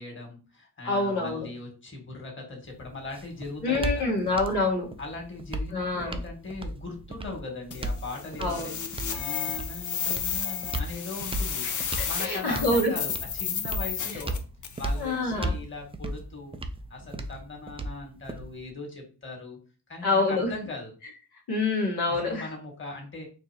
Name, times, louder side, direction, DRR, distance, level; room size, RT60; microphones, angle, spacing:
voice 1, 0.0-4.1 5.0-8.8 9.1-11.7 12.0-14.4 14.8-16.6 16.9-19.6 19.9-20.9 22.1-23.3, left 3 dB, 30° left, 1 dB, 1.7 m, -39 dB
voice 2, 0.8-1.5 3.6-4.9 5.7-6.2 8.4-8.7 12.2-12.9 15.0-15.5 20.0-20.5 21.5-22.5, left 2 dB, 80° left, -3 dB, 1.4 m, -26 dB
sound 1, 2.7-18.7, right 1 dB, 15° right, 0.4 m, -36 dB
sound 2, 7.7-14.9, left 7 dB, 50° left, 0.7 m, -32 dB
4.5 x 2.6 x 2.7 m, 0.35 s
cardioid pair, 75°, 39 cm